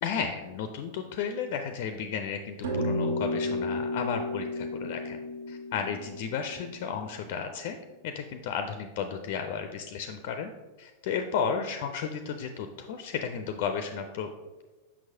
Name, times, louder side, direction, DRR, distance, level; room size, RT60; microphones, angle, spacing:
voice 1, 0.0-5.2 5.5-7.8 8.0-10.5 10.8-14.3, left 6 dB, 50° left, 7 dB, 0.4 m, -33 dB
sound 1, 2.6-7.3, left 1 dB, 60° right, 0.7 m, -33 dB
6.2 x 5.8 x 2.7 m, 1.2 s
figure-of-eight pair, 90°, 0 cm